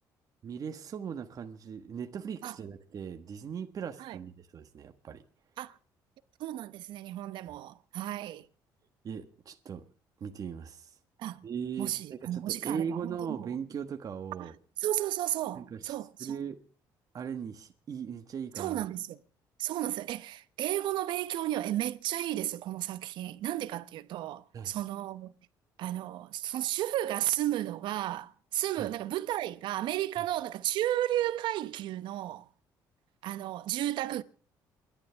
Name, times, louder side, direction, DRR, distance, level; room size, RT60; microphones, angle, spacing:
voice 1, 0.4-5.2 9.0-9.8 10.2-10.9 11.4-14.5 15.5-15.9 16.2-16.6 17.1-18.8 24.5-24.7 28.8-28.9, right 7 dB, 50° right, 1.5 m, -38 dB
voice 2, 6.4-8.5 11.2-11.5 11.8-13.0 13.3-13.5 14.4-14.5 14.8-16.3 18.6-19.2 19.6-25.3 25.8-32.5 33.2-34.2, right 13 dB, 75° right, 0.9 m, -33 dB
29.0 x 11.5 x 3.5 m
cardioid pair, 95°, 8 cm